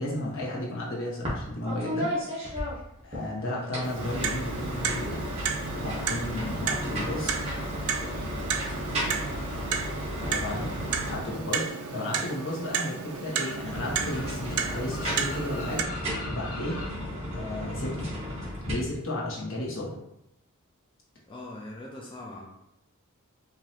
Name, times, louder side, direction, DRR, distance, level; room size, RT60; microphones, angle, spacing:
voice 1, 0.0-2.1 3.0-5.2 5.7-7.3 10.2-16.8 17.3-18.1 18.6-20.0, left 1 dB, 65° left, -5 dB, 1.3 m, -33 dB
sound 1, 1.2-1.4 1.7-3.2 3.6-11.7 13.4-18.7, equal, 30° right, 1.3 m, -34 dB
Clock, 3.8-15.8, right 6 dB, 80° right, 0.4 m, -33 dB
sound 2, 7.0-16.9, left 2 dB, 85° left, 0.7 m, -45 dB
voice 2, 10.1-10.4 19.4-19.5 21.3-22.5, left 1 dB, 25° left, -4 dB, 0.5 m, -42 dB
4.8 x 2.8 x 2.8 m, 0.82 s
head